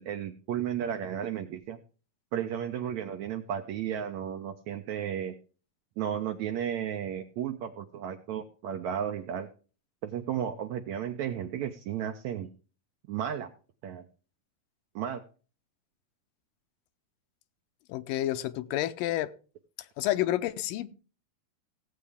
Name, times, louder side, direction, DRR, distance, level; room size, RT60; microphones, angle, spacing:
voice 1, 0.0-1.8 2.3-5.4 6.0-9.5 10.0-12.5 13.1-13.5 13.8-14.1 15.0-15.2, right 9 dB, 75° right, 6 dB, 1.7 m, -33 dB
voice 2, 17.9-19.3 20.0-20.9, left 14 dB, 80° left, 12 dB, 2.4 m, -29 dB
16.5 x 8.3 x 3.5 m, 0.36 s
omnidirectional pair, 4.0 m